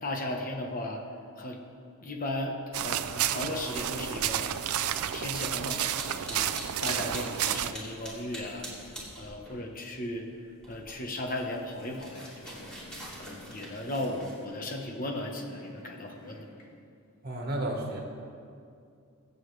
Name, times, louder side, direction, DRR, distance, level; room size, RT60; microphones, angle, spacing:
voice 1, 0.0-1.0 1.4-1.6 2.0-4.5 5.1-6.5 6.8-8.7 9.2-12.7 13.2-16.5, left 1 dB, 40° left, 2 dB, 1.1 m, -36 dB
sound 1, 2.7-7.7, right 11 dB, 80° right, 0.4 m, -31 dB
sound 2, 3.7-9.6 9.9-14.4, right 1 dB, 5° left, 3.1 m, -45 dB
sound 3, 11.5-16.7, left 1 dB, 85° left, 2.1 m, -51 dB
voice 2, 17.2-18.0, right 1 dB, 45° right, 0 dB, 1.7 m, -32 dB
24.0 x 8.1 x 3.3 m, 2.4 s
head